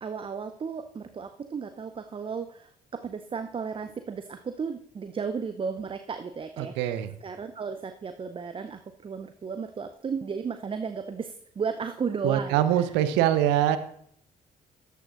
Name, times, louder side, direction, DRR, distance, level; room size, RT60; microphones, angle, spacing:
voice 1, 0.0-6.9 7.2-12.9, right 5 dB, 25° right, 9 dB, 0.6 m, -34 dB
voice 2, 6.6-7.1 12.2-13.8, right 11 dB, 65° right, 12 dB, 0.7 m, -23 dB
13.5 x 9.3 x 2.5 m, 0.66 s
figure-of-eight pair, 45°, 20 cm